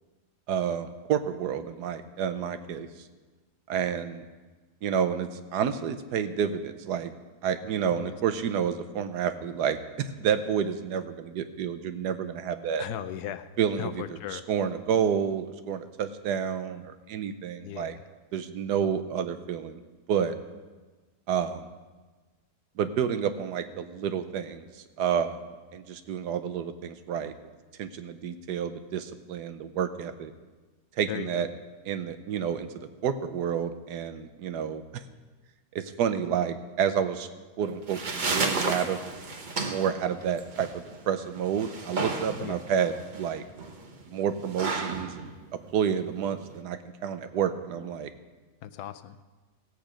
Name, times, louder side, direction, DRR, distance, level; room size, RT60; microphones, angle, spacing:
voice 1, 0.5-2.9 3.7-4.2 4.8-7.1 7.4-12.8 13.6-17.9 18.3-19.8 20.1-20.3 21.3-21.7 22.8-25.4 25.7-27.3 27.8-30.3 31.0-31.5 31.8-34.8 35.7-37.3 37.6-39.0 39.6-43.4 44.1-45.3 45.7-48.1, right 8 dB, 90° right, 10 dB, 1.3 m, -29 dB
voice 2, 12.8-13.5 13.8-14.4 17.6-18.0 31.1-31.4 42.4-42.6 48.6-49.2, left 10 dB, 80° left, 11 dB, 1.1 m, -37 dB
sound 1, 37.6-46.6, right 3 dB, 35° right, 0.9 m, -33 dB
16.5 x 8.0 x 5.1 m, 1.3 s
omnidirectional pair, 1.7 m